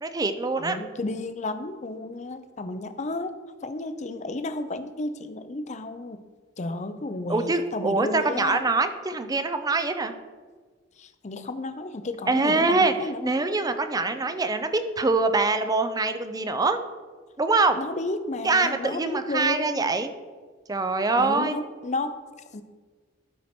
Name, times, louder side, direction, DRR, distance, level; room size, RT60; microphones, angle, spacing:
voice 1, 0.0-0.8 7.3-10.1 12.3-16.8 17.4-17.8 18.4-20.1 20.7-21.6, right 3 dB, 20° right, 9 dB, 0.5 m, -24 dB
voice 2, 0.6-3.4 3.6-6.2 6.6-8.6 11.0-13.3 17.7-19.9 21.1-22.1 22.5-22.6, left 2 dB, 35° left, 10 dB, 0.6 m, -32 dB
12.5 x 4.6 x 4.4 m, 1.5 s
head